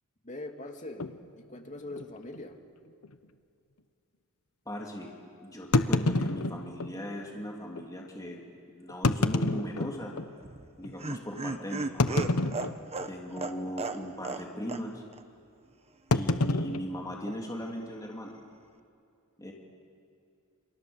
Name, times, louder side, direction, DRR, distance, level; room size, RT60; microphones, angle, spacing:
voice 1, 0.2-2.6, left 2 dB, 35° left, 3 dB, 2.8 m, -42 dB
sound 1, 1.0-1.2 1.9-2.0 2.3-2.4 3.0-3.1 5.7-6.9 7.8-7.9 8.9-10.3 10.8-10.9 12.0-13.1 13.4-13.7 14.0-14.3 16.1-17.7, left 2 dB, 70° left, 1.1 m, -28 dB
voice 2, 4.6-5.1 5.4-10.1 10.8-12.3 13.0-15.0 16.1-18.4 19.4-19.5, equal, 15° left, -1 dB, 3.2 m, -38 dB
Laughter, 10.4-14.4 14.7-14.8 15.1-15.2, right 3 dB, 30° right, 1.2 m, -35 dB
29.5 x 26.5 x 7.3 m, 2.5 s
head